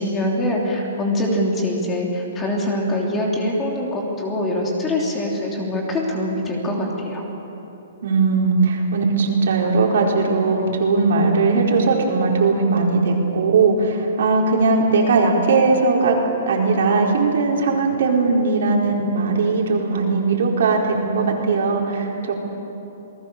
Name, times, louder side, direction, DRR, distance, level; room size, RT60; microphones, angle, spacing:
voice 1, 0.0-7.2, left 1 dB, 15° left, -1 dB, 3.2 m, -23 dB
voice 2, 8.0-16.2 16.5-22.5, right 4 dB, 70° right, -1 dB, 4.7 m, -19 dB
28.5 x 19.5 x 6.9 m, 3.0 s
hypercardioid pair, 165°, 0 cm